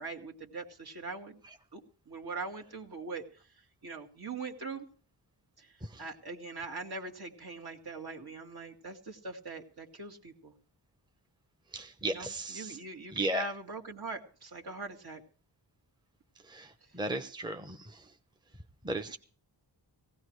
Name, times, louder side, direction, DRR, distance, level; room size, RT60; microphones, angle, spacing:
voice 1, 0.0-1.4 1.7-3.2 3.8-4.9 5.6-5.7 6.0-10.5 12.0-15.2, right 3 dB, 60° right, 1 dB, 2.5 m, -42 dB
voice 2, 11.7-12.8 13.1-13.5 16.5-16.7 16.9-17.9 18.8-19.2, right 2 dB, 10° right, 6 dB, 0.9 m, -35 dB
18.5 x 17.0 x 3.2 m, 0.41 s
wide cardioid pair, 105°, 43 cm